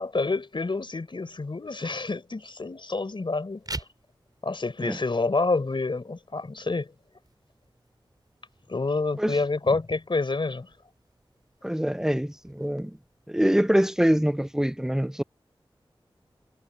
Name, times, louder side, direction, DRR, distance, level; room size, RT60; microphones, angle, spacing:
voice 1, 0.0-3.6 4.4-6.9 8.7-10.7, left 3 dB, 60° left, 4.3 m, -28 dB
sound 1, 3.5-14.5, right 2 dB, 45° right, 5.7 m, -48 dB
voice 2, 11.6-13.0 13.3-15.2, equal, 5° right, 0.6 m, -24 dB
cardioid pair, 45°, 9 cm